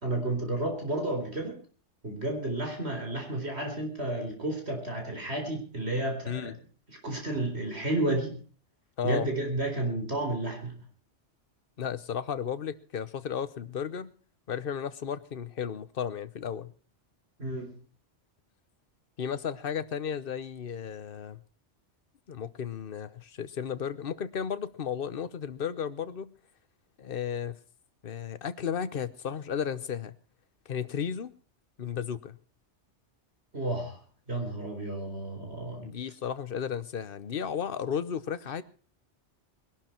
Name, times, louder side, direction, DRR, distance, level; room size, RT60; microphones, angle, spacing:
voice 1, 0.0-1.6 2.0-6.5 7.0-8.3 9.0-10.8 17.4-17.7 33.5-34.0 34.3-35.9, right 2 dB, 65° right, 3 dB, 4.5 m, -31 dB
voice 2, 9.0-9.3 11.8-14.1 14.5-16.7 19.2-21.4 22.3-26.3 27.0-27.6 28.0-30.2 30.7-31.3 31.8-32.4 35.8-38.6, left 8 dB, 55° left, 14 dB, 1.1 m, -34 dB
21.0 x 12.0 x 4.5 m, 0.40 s
omnidirectional pair, 1.2 m